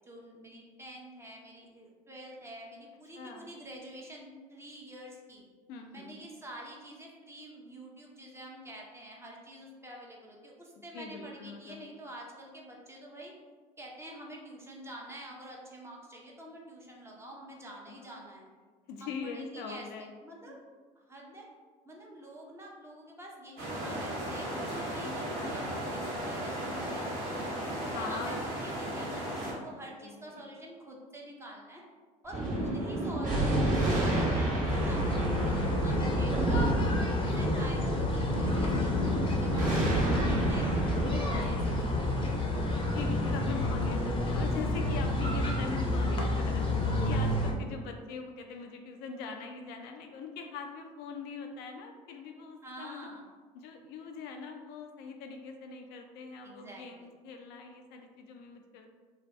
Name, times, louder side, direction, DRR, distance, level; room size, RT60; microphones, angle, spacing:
voice 1, 0.0-5.5 5.9-13.3 13.8-18.5 19.0-20.6 21.0-21.5 21.8-27.5 27.9-31.8 32.2-35.5 35.8-36.7 37.1-41.6 41.9-42.5 46.3-46.9 52.6-53.2 56.4-57.1, right 1 dB, 15° right, -2 dB, 0.7 m, -47 dB
voice 2, 3.2-3.6 5.7-6.1 10.9-11.9 17.9-18.0 18.9-20.1 20.5-20.6 27.8-28.5 30.0-30.4 37.1-37.5 42.9-46.6 47.0-53.1 53.5-58.9, left 5 dB, 65° left, 4 dB, 0.4 m, -42 dB
sound 1, 23.6-29.5, equal, 65° right, 1.0 m, -35 dB
Thunder, 32.3-43.2, right 2 dB, 45° right, 1.0 m, -30 dB
sound 2, 34.7-47.5, left 2 dB, 25° left, 0.6 m, -30 dB
2.5 x 2.2 x 3.3 m, 1.5 s
hypercardioid pair, 70°, 19 cm